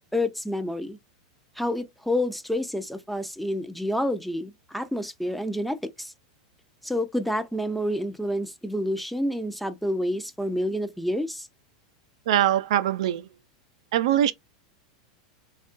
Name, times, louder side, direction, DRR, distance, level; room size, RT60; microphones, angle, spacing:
voice 1, 0.1-1.0 1.6-6.1 6.8-11.5, left 1 dB, ahead, 0.5 m, -28 dB
voice 2, 12.3-13.3 13.9-14.3, right 11 dB, 70° right, 0.4 m, -22 dB
3.5 x 2.3 x 2.5 m
hypercardioid pair, 110°, 3 cm